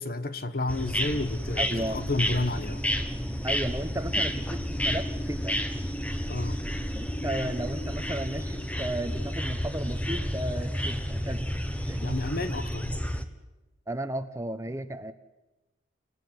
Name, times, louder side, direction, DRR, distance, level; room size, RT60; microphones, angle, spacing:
voice 1, 0.0-2.8 6.3-6.6 12.0-13.0, left 2 dB, 50° left, 12 dB, 1.3 m, -31 dB
sound 1, 0.7-13.3, equal, 5° left, 1.2 m, -31 dB
voice 2, 1.6-2.0 3.4-5.6 6.9-11.5 11.9-12.2 13.9-15.1, right 1 dB, 15° right, 11 dB, 0.9 m, -34 dB
29.5 x 16.0 x 9.6 m, 1.1 s
head